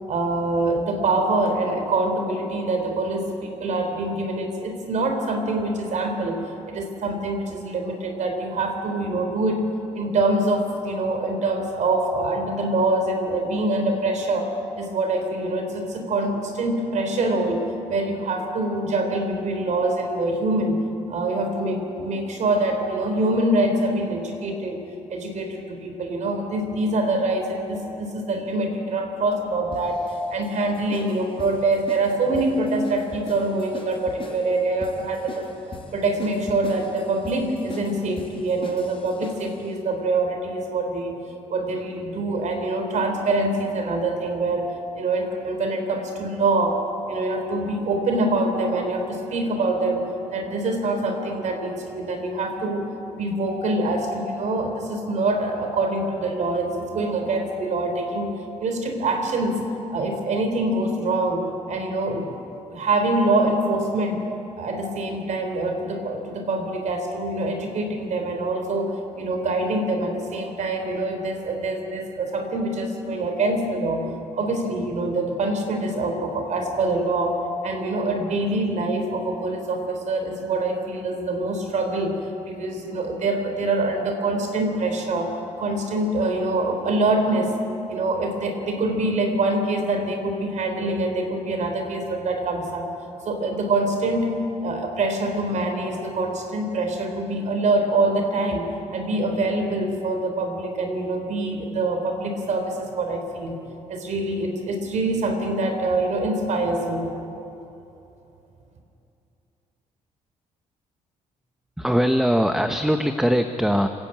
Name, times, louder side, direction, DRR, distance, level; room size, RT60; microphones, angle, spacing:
voice 1, 0.1-6.4 6.7-9.7 9.9-17.6 17.9-20.8 21.1-24.8 25.1-30.0 30.3-35.5 35.9-41.2 41.5-46.8 47.1-52.9 53.1-58.3 58.6-59.6 59.9-62.3 62.7-64.2 64.6-74.1 74.4-77.3 77.6-87.5 87.9-92.9 93.2-103.6 103.9-107.1, right 2 dB, 60° right, 5 dB, 3.7 m, -25 dB
sound 1, 29.7-39.6, left 3 dB, 40° left, 5.6 m, -40 dB
voice 2, 111.8-113.9, equal, 5° right, 7 dB, 1.0 m, -21 dB
30.0 x 10.5 x 8.9 m, 2.9 s
cardioid pair, 85°, 14 cm